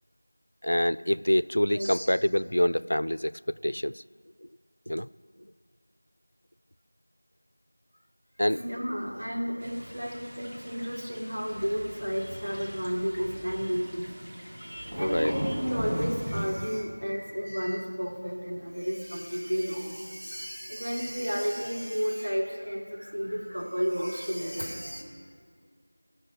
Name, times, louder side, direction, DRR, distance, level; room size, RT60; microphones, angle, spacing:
voice 1, 0.6-4.0 4.9-5.1 8.4-8.6 15.0-15.3, equal, 75° left, 19 dB, 0.3 m, -26 dB
voice 2, 1.7-2.1 8.5-14.1 14.6-25.0, equal, 80° right, -3 dB, 4.1 m, -32 dB
sound 1, 9.6-16.5, equal, 10° right, 0.9 m, -38 dB
15.5 x 6.2 x 9.5 m, 2.1 s
figure-of-eight pair, 175°, 0 cm